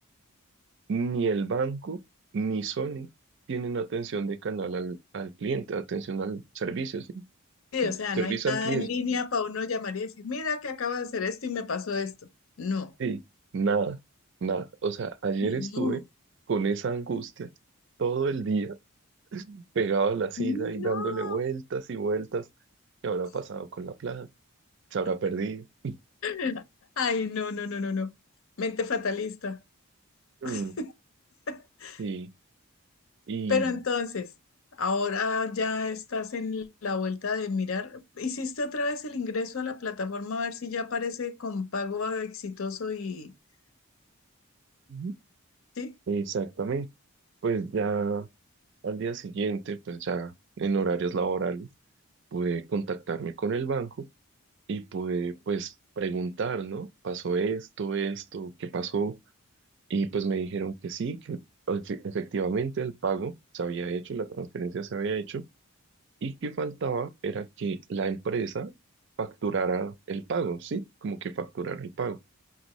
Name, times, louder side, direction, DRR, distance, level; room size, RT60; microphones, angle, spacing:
voice 1, 0.9-2.0 2.3-3.1 3.5-7.2 7.8-8.9 13.0-13.2 13.5-14.0 14.4-16.0 16.5-17.5 18.0-18.8 19.3-22.4 23.0-24.3 24.9-26.0 30.4-30.7 32.0-32.3 33.3-33.7 44.9-45.2 46.1-46.9 47.4-48.3 48.8-51.7 52.3-54.1 54.7-59.2 59.9-61.4 61.7-65.4 66.2-68.7 69.2-72.2, right 4 dB, 55° right, 0.4 m, -30 dB
voice 2, 7.7-12.1 12.6-12.9 15.4-16.0 20.4-21.4 26.2-26.6 27.0-28.1 28.6-29.6 30.4-30.9 31.5-32.0 33.5-34.3 34.8-43.3 45.8-45.9, left 4 dB, 65° left, 0.7 m, -31 dB
5.7 x 2.6 x 3.0 m
head